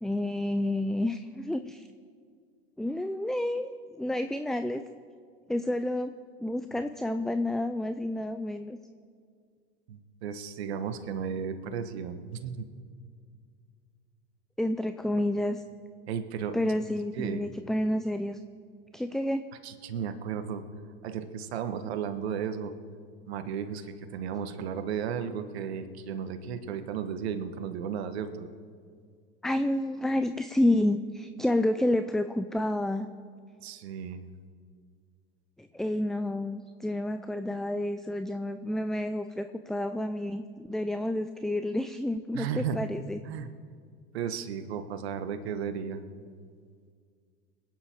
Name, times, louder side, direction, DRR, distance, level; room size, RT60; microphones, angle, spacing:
voice 1, 0.0-1.9 2.8-4.8 5.5-6.1 6.4-8.8 14.6-15.6 16.5-18.4 18.9-19.5 29.4-33.1 35.6-43.2, left 1 dB, ahead, 10 dB, 0.4 m, -29 dB
voice 2, 9.9-12.7 15.2-15.3 16.1-16.6 17.1-17.4 19.6-20.6 21.0-22.7 23.3-28.5 33.6-34.3 42.3-42.9 43.2-43.5 44.1-46.0, right 7 dB, 75° right, 9 dB, 1.4 m, -34 dB
25.0 x 9.6 x 4.5 m, 2.1 s
hypercardioid pair, 90°, 32 cm